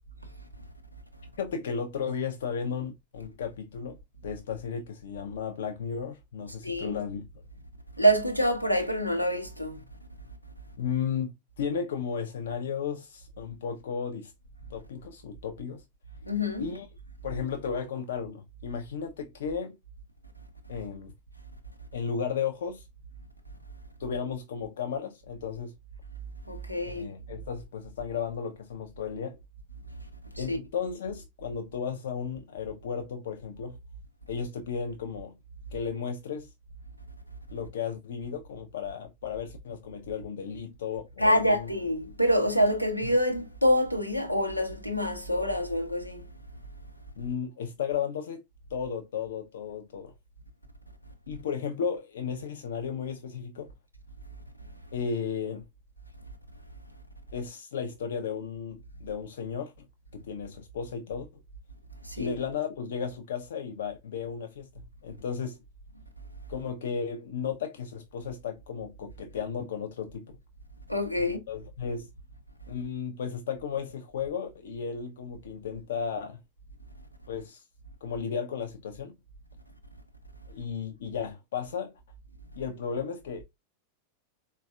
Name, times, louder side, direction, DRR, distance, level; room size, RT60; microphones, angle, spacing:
voice 1, 1.4-4.0 4.2-7.3 10.8-11.3 11.6-14.3 14.7-15.8 16.6-16.9 17.2-19.8 20.7-21.1 21.9-22.9 24.0-25.7 26.8-29.4 30.4-33.8 34.3-35.4 35.7-36.5 37.5-41.7 47.2-48.4 48.7-50.1 51.3-53.7 54.9-55.6 57.3-59.9 60.1-61.3 62.2-65.6 66.5-70.4 71.2-72.1 72.7-76.4 77.3-77.6 78.0-79.1 80.5-81.9 82.6-83.4, left 6 dB, 60° left, 0.4 m, -34 dB
voice 2, 6.6-7.0 8.0-9.8 16.2-16.7 26.5-27.1 30.3-30.6 41.2-46.2 62.0-62.4 70.9-71.4, equal, 90° left, 0.7 m, -26 dB
4.0 x 2.2 x 2.2 m
figure-of-eight pair, 90°, 0 cm